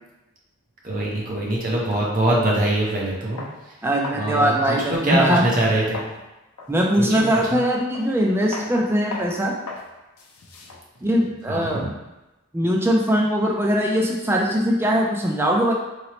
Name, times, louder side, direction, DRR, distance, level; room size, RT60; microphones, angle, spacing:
voice 1, 0.8-3.4 4.2-6.0 6.9-7.1 7.5-7.6 11.5-11.9, right 1 dB, 40° right, -4 dB, 0.8 m, -23 dB
sound 1, 3.4-3.5 4.0-4.3 4.7-6.2 6.6-6.7 7.3-7.6 7.9-8.2 8.5-8.7 9.1-9.3 9.7-9.9 10.2-12.1, left 3 dB, 85° left, 0.5 m, -35 dB
voice 2, 3.8-5.4 6.7-9.5 11.0-11.9 12.5-15.7, equal, 10° right, -1 dB, 0.4 m, -21 dB
3.0 x 2.9 x 2.9 m, 1.0 s
head